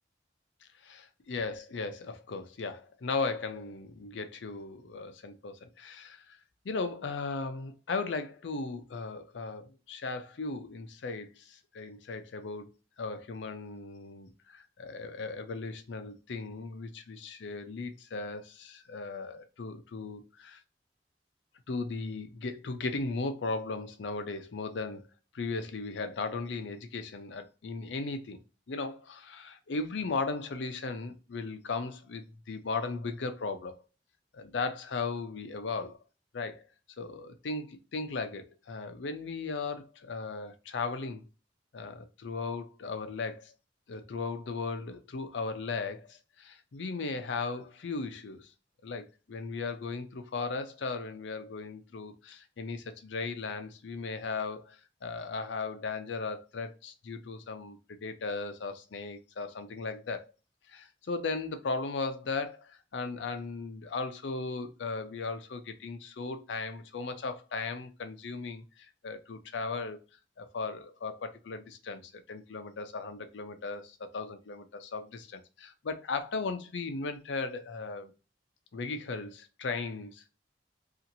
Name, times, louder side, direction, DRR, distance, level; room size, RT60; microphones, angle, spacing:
voice 1, 0.8-6.4 6.6-12.7 13.0-20.6 21.7-25.0 25.3-28.4 28.7-33.8 34.3-36.0 36.3-36.7 37.0-41.2 41.7-43.5 43.9-48.5 48.8-60.3 60.7-70.0 70.4-78.1 78.7-80.2, left 4 dB, 85° left, 0.5 m, -37 dB
2.8 x 2.5 x 2.6 m
head